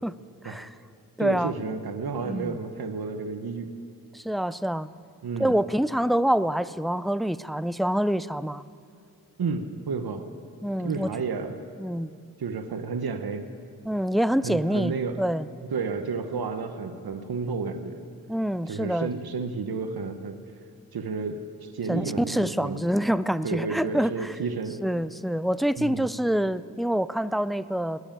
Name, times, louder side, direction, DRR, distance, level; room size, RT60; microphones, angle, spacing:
voice 1, 0.4-0.7 1.2-1.5 2.2-2.6 4.1-4.9 5.4-8.6 10.6-11.1 11.8-12.1 13.8-15.5 18.3-19.1 21.9-24.1 24.8-28.0, equal, ahead, 16 dB, 0.4 m, -26 dB
voice 2, 1.2-3.7 5.2-5.5 9.4-10.2 10.8-11.6 12.4-13.5 14.4-15.2 15.7-18.0 18.7-20.4 20.9-23.1 23.4-24.8 25.8-26.1, right 4 dB, 80° right, 8 dB, 1.0 m, -31 dB
19.0 x 8.0 x 8.9 m, 2.3 s
cardioid pair, 45°, 37 cm